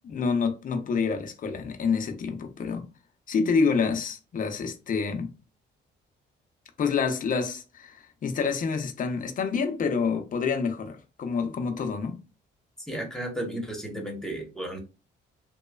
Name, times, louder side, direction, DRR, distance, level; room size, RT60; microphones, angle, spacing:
voice 1, 0.0-2.9 3.3-5.3 6.8-12.2, left 5 dB, 45° left, 0.6 m, -27 dB
voice 2, 12.8-14.8, right 1 dB, 5° left, 1.0 m, -34 dB
3.0 x 2.1 x 2.2 m
cardioid pair, 90°, 20 cm